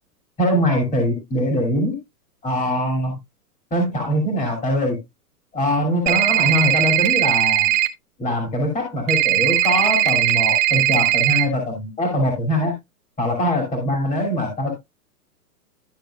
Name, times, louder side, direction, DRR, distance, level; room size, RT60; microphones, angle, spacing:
voice 1, 0.4-2.0 2.4-3.2 3.7-5.0 5.5-7.7 8.2-12.8 13.2-14.8, equal, 15° left, 2.7 m, -22 dB
sound 1, 6.1-7.9 9.1-11.4, right 14 dB, 50° right, 1.1 m, -18 dB
12.5 x 6.7 x 2.3 m
hypercardioid pair, 130°, 47 cm